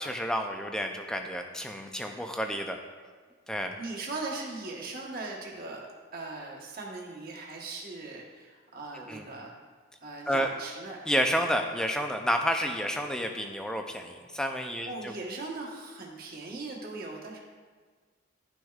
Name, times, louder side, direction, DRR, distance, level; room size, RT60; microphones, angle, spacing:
voice 1, 0.0-2.8 3.5-3.8 8.9-9.3 10.3-10.5 11.1-15.1, equal, 5° left, 4 dB, 0.4 m, -30 dB
voice 2, 3.8-5.9 6.1-9.5 10.0-11.0 14.8-17.4, right 3 dB, 45° right, -2 dB, 1.2 m, -39 dB
11.5 x 6.2 x 2.4 m, 1.5 s
head